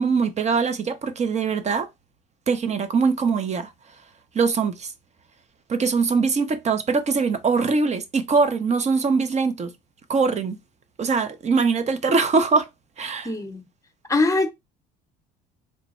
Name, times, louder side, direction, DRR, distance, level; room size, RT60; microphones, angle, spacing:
voice 1, 0.0-1.9 2.5-3.7 4.3-4.9 5.7-9.7 10.1-10.6 11.0-12.7 13.0-13.3, right 4 dB, 35° right, 0.7 m, -22 dB
voice 2, 13.2-13.6 14.1-14.5, left 2 dB, 15° left, 0.9 m, -22 dB
3.2 x 2.2 x 4.1 m
supercardioid pair, 80°, 21 cm